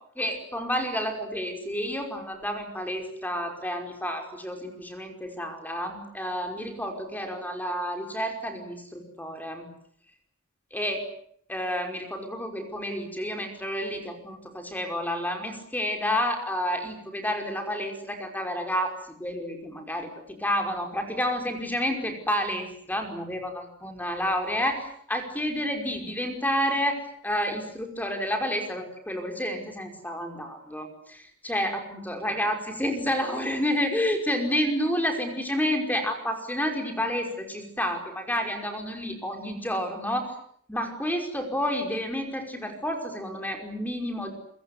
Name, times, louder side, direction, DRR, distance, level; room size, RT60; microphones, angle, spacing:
voice 1, 0.2-9.7 10.7-11.1 11.5-20.1 20.4-40.3 40.7-44.3, equal, 10° left, 4 dB, 5.4 m, -30 dB
28.0 x 24.5 x 8.2 m, 0.66 s
head